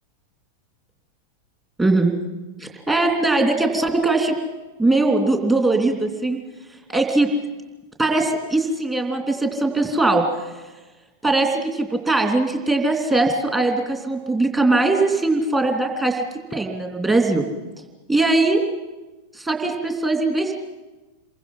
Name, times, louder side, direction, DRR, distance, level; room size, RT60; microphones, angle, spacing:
voice 1, 1.8-2.1 2.6-4.3 4.8-6.4 6.9-7.3 8.0-10.2 11.2-16.2 16.5-17.4 18.1-18.6 19.3-20.5, right 2 dB, 15° right, 3 dB, 3.0 m, -20 dB
27.5 x 23.0 x 5.7 m, 1.1 s
figure-of-eight pair, 90°, 0 cm